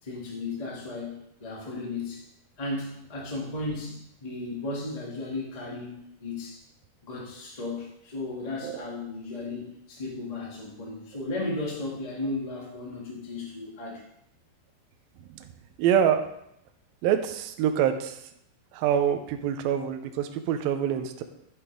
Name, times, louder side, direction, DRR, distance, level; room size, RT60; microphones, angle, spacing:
voice 1, 0.0-2.2 2.6-6.6 7.0-14.0, left 2 dB, 15° left, -4 dB, 1.2 m, -35 dB
voice 2, 15.8-16.3 17.0-18.2 18.7-21.2, right 9 dB, 80° right, 7 dB, 2.1 m, -25 dB
11.0 x 8.1 x 3.6 m, 0.78 s
omnidirectional pair, 5.1 m